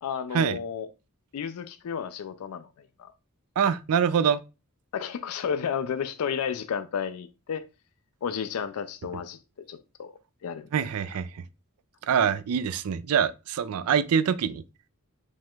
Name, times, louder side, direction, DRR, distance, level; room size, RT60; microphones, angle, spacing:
voice 1, 0.0-0.9 1.3-2.7 3.0-3.1 4.9-7.6 8.2-9.4 9.7-10.1 10.4-10.7, left 7 dB, 75° left, 0.4 m, -32 dB
voice 2, 3.6-4.4 10.7-11.3 12.1-14.6, right 7 dB, 80° right, 0.4 m, -24 dB
5.2 x 2.4 x 3.6 m
head